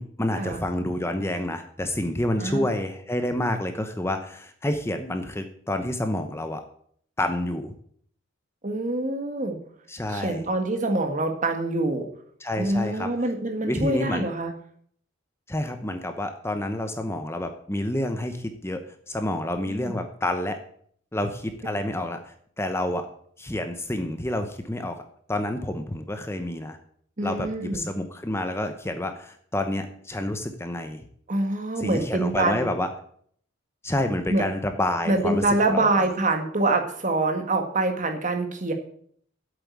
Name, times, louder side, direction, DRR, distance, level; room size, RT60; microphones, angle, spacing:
voice 1, 0.0-6.6 7.2-7.7 9.9-10.4 12.4-13.1 13.6-14.3 15.5-20.6 21.1-23.1 23.4-25.0 25.3-26.8 27.2-31.0 31.8-32.9 33.8-36.0, left 1 dB, 15° left, 7 dB, 0.8 m, -29 dB
voice 2, 8.6-9.6 10.1-12.1 12.6-14.5 19.7-19.9 27.2-27.9 31.3-32.6 34.3-34.4 35.1-38.7, right 2 dB, 40° right, 5 dB, 1.6 m, -25 dB
8.2 x 7.7 x 8.5 m, 0.62 s
head